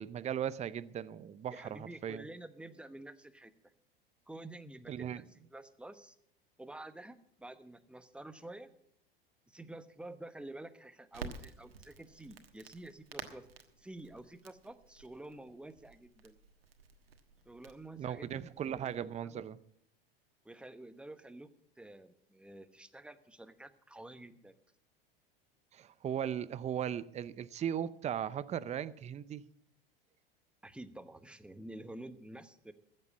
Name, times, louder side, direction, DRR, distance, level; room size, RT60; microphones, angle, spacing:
voice 1, 0.0-2.2 4.9-5.2 18.0-19.6 25.7-29.4, right 9 dB, 25° right, 0.6 m, -37 dB
voice 2, 1.5-3.5 4.3-6.2 6.6-8.7 9.5-13.5 13.8-16.4 17.4-19.4 20.4-21.5 21.8-24.6 30.6-32.7, right 1 dB, 5° right, 1.0 m, -49 dB
Crackle, 11.1-19.0, right 5 dB, 85° right, 1.4 m, -51 dB
14.5 x 7.6 x 8.5 m
hypercardioid pair, 85°, 29 cm